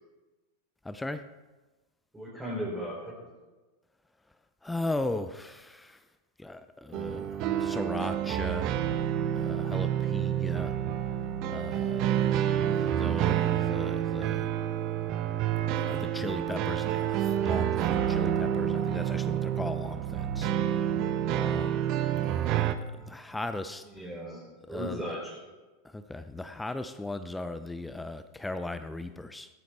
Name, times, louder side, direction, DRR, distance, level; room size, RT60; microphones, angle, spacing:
voice 1, 0.8-1.2 4.6-6.0 6.4-10.8 11.5-14.5 15.7-20.9 21.3-21.8 22.2-22.6 23.1-23.9 24.7-25.0 25.8-29.5, left 2 dB, 5° left, 11 dB, 0.6 m, -37 dB
voice 2, 2.1-3.3 23.9-25.5, equal, 10° right, -5 dB, 3.5 m, -37 dB
sound 1, 6.9-22.8, right 10 dB, 40° right, 0.9 m, -28 dB
18.0 x 13.0 x 3.5 m, 1.2 s
figure-of-eight pair, 90°, 0 cm